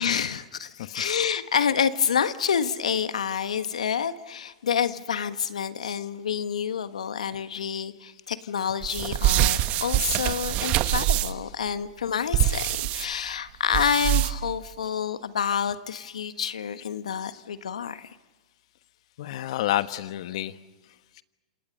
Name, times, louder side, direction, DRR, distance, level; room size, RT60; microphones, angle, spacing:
voice 1, 0.0-18.1, left 7 dB, 80° left, 11 dB, 1.5 m, -28 dB
sound 1, 8.8-11.5 12.3-13.1 13.7-14.5, right 15 dB, 40° right, 1.6 m, -24 dB
voice 2, 19.2-20.6, left 14 dB, 60° left, 12 dB, 1.3 m, -30 dB
28.5 x 27.5 x 5.5 m, 1.2 s
hypercardioid pair, 115°, 4 cm